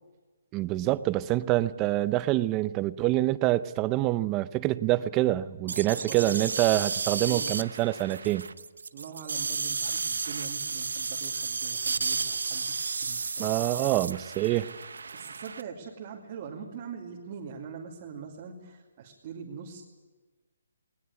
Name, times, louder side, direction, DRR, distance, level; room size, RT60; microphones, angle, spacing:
voice 1, 0.5-8.5 13.4-14.7, right 16 dB, 20° right, 16 dB, 0.6 m, -26 dB
voice 2, 5.6-6.4 7.2-7.5 8.9-13.9 15.1-19.8, right 6 dB, 35° right, -2 dB, 2.6 m, -43 dB
sound 1, 5.7-15.6, right 4 dB, 85° right, 0.9 m, -33 dB
19.5 x 19.5 x 9.6 m, 1.3 s
hypercardioid pair, 165°, 0 cm